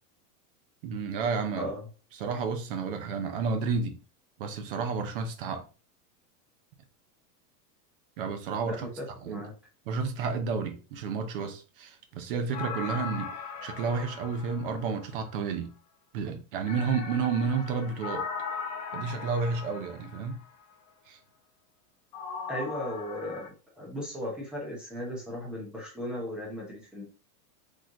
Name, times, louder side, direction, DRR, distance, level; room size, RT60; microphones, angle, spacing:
voice 1, 0.8-1.7 2.1-4.0 4.4-5.7 8.2-8.9 9.2-9.4 9.9-15.7 16.1-18.2 18.9-20.4 21.1-21.2, right 5 dB, 35° right, 0.7 m, -31 dB
voice 2, 1.6-1.9 8.7-9.5 22.5-23.5 23.8-27.0, equal, ahead, 0.7 m, -36 dB
sound 1, 12.5-15.3 16.6-20.5 22.1-23.5, left 6 dB, 30° left, 0.4 m, -39 dB
4.2 x 3.2 x 3.7 m
supercardioid pair, 175°, 47 cm